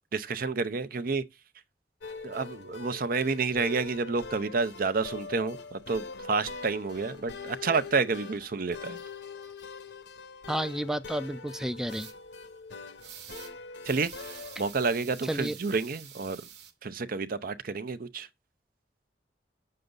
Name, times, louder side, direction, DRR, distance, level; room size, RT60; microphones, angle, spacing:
voice 1, 0.1-1.2 2.2-9.0 13.8-14.1 14.6-16.4 16.8-18.3, right 4 dB, 55° right, 0.6 m, -29 dB
sound 1, 2.0-14.7, left 4 dB, 80° left, 1.1 m, -43 dB
voice 2, 10.5-12.1 15.2-15.6, right 1 dB, 5° right, 0.4 m, -31 dB
sound 2, 11.9-12.1 13.0-13.5 13.8-16.7, right 9 dB, 70° right, 1.1 m, -47 dB
7.9 x 6.6 x 3.8 m
head